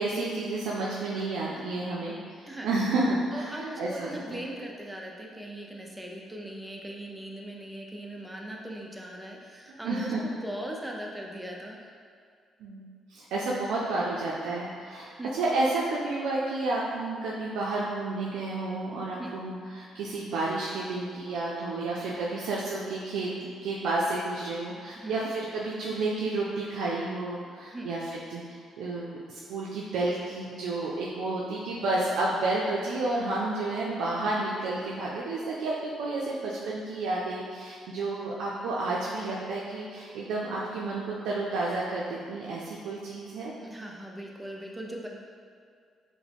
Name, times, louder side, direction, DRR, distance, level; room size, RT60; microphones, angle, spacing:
voice 1, 0.0-4.4 9.7-10.2 12.6-43.5, right 2 dB, 85° right, -5 dB, 0.4 m, -31 dB
voice 2, 3.3-12.0 15.2-15.3 19.2-19.3 25.0-25.3 27.7-27.9 43.6-45.1, right 1 dB, 10° right, -1 dB, 0.5 m, -39 dB
4.7 x 2.1 x 3.4 m, 2.2 s
cardioid pair, 90°, 0 cm